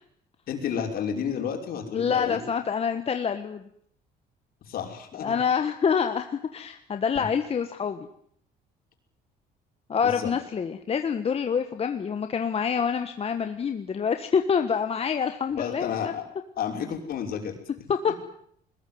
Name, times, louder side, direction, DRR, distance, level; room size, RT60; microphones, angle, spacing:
voice 1, 0.5-2.4 4.7-5.4 7.1-7.3 10.0-10.3 15.5-16.2 16.6-17.6 18.1-18.2, left 8 dB, 60° left, 3 dB, 5.8 m, -31 dB
voice 2, 1.9-3.7 5.2-8.1 9.9-16.1 17.9-18.1, left 6 dB, 35° left, 7 dB, 1.5 m, -26 dB
21.5 x 20.5 x 9.6 m, 0.66 s
cardioid pair, 110°, 17 cm